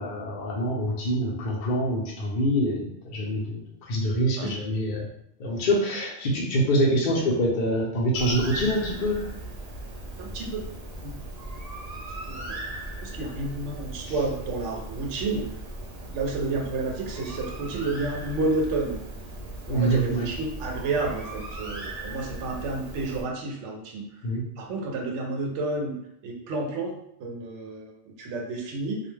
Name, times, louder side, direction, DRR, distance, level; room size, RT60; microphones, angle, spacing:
voice 1, 0.0-5.1 5.4-9.3 19.7-20.3 24.2-24.4, equal, 55° left, -2 dB, 0.7 m, -25 dB
voice 2, 6.9-7.2 10.2-10.6 11.0-11.1 12.3-12.6 13.0-15.5 16.1-19.0 19.7-24.2 24.6-26.0 26.2-29.0, right 3 dB, 80° right, 1 dB, 0.9 m, -30 dB
Bird, 8.1-23.2, right 1 dB, 50° right, 0.5 m, -38 dB
2.4 x 2.1 x 3.1 m, 0.71 s
omnidirectional pair, 1.2 m